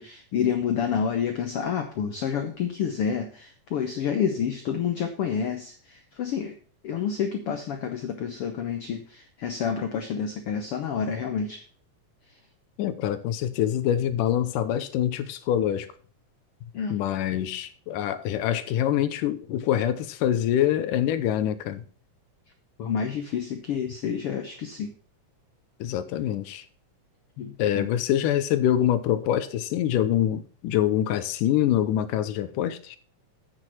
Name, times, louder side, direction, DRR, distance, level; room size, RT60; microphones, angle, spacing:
voice 1, 0.0-6.5 6.8-11.6 16.7-17.0 22.8-24.9 27.4-27.9, left 7 dB, 70° left, 1.4 m, -29 dB
voice 2, 12.8-15.9 16.9-21.8 25.8-26.6 27.6-33.0, left 11 dB, 85° left, 2.3 m, -25 dB
8.9 x 6.4 x 5.9 m
omnidirectional pair, 3.7 m